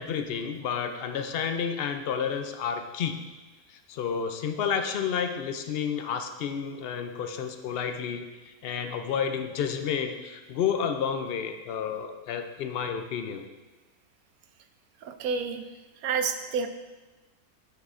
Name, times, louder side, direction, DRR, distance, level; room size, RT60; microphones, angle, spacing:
voice 1, 0.0-3.2 3.7-13.5, left 7 dB, 70° left, 6 dB, 0.5 m, -31 dB
voice 2, 15.0-15.7 16.0-16.7, right 5 dB, 80° right, 8 dB, 1.0 m, -29 dB
9.4 x 6.6 x 2.5 m, 1.2 s
omnidirectional pair, 1.5 m